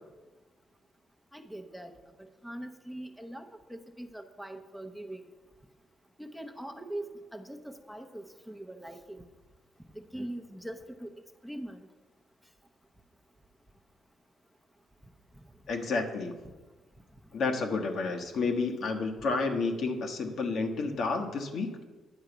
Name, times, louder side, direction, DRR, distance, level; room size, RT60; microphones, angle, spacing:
voice 1, 1.3-1.9 2.2-5.2 6.2-9.2 9.9-11.1 11.4-11.8, right 1 dB, ahead, 5 dB, 0.8 m, -42 dB
voice 2, 15.7-16.3 17.3-21.7, left 4 dB, 65° left, 4 dB, 1.3 m, -30 dB
10.5 x 4.7 x 8.0 m, 1.2 s
cardioid pair, 90°, 0 cm